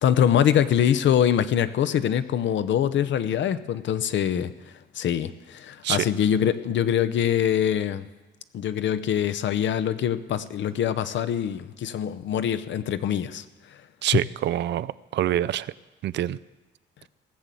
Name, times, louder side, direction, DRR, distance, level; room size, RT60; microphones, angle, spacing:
voice 1, 0.0-8.1 8.5-13.4 13.7-13.8, left 9 dB, 70° left, 12 dB, 0.8 m, -24 dB
voice 2, 14.0-15.7 16.0-16.4, right 12 dB, 65° right, 18 dB, 0.4 m, -26 dB
18.0 x 6.9 x 7.6 m, 1.1 s
cardioid pair, 90°, 20 cm